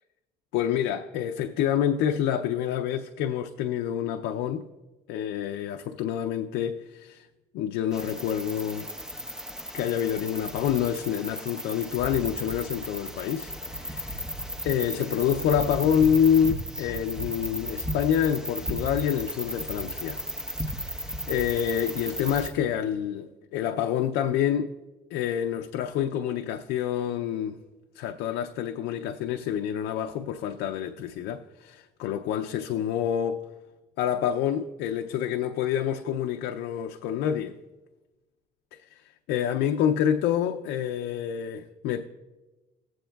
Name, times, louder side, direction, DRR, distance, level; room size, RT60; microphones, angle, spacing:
voice 1, 0.5-4.7 5.1-7.3 7.5-8.9 9.7-14.3 14.6-20.2 20.8-24.8 25.1-27.6 27.9-33.5 34.0-37.6 38.7-42.0, left 9 dB, 90° left, 0.4 m, -27 dB
sound 1, 7.9-22.5, equal, 5° right, 0.9 m, -35 dB
18.0 x 7.8 x 2.2 m
cardioid pair, 110°, 17 cm